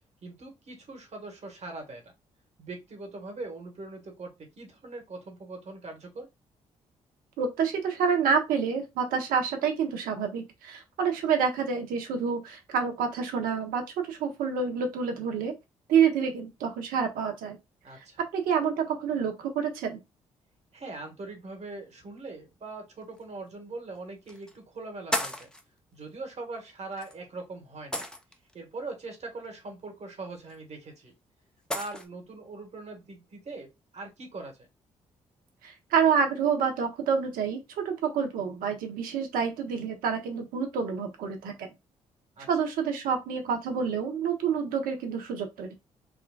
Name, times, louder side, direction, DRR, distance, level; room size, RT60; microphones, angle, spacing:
voice 1, 0.2-2.1 2.6-6.3 17.8-18.2 20.7-25.5 25.9-28.1 28.5-31.1 31.7-34.7 42.4-42.5, right 3 dB, 50° right, 1.2 m, -41 dB
voice 2, 7.4-15.5 15.9-17.6 18.3-20.0 35.6-41.7 42.5-45.7, right 6 dB, 75° right, 0.7 m, -28 dB
sound 1, 23.1-23.2 24.3-24.5 25.1-25.6 27.0-27.1 27.9-28.5 30.5-30.6 31.7-32.1, equal, 5° left, 0.6 m, -32 dB
3.7 x 2.2 x 2.2 m
hypercardioid pair, 45°, 15 cm